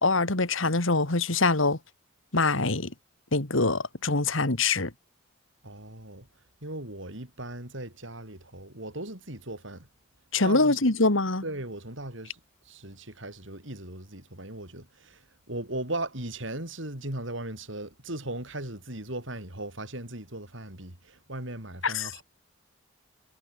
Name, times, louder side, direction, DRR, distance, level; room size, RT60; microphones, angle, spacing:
voice 1, 0.0-1.8 2.3-2.9 3.3-4.9 10.3-11.4 21.8-22.1, left 3 dB, 75° left, 2.4 m, -24 dB
voice 2, 5.6-6.3 6.6-9.9 10.4-10.9 11.4-12.4 12.7-15.2 15.5-22.2, right 1 dB, 65° right, 5.7 m, -38 dB
head